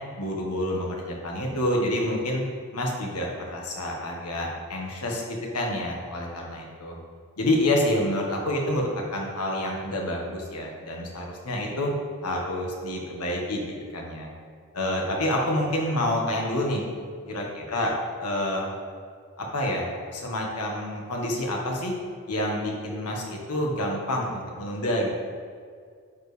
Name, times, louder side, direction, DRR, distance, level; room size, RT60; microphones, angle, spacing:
voice 1, 0.2-2.4 2.7-7.0 7.4-11.9 12.2-14.3 14.7-16.8 17.3-18.7 19.4-21.9 22.3-25.1, left 1 dB, 90° left, -1 dB, 1.4 m, -28 dB
10.0 x 5.0 x 3.3 m, 2.1 s
head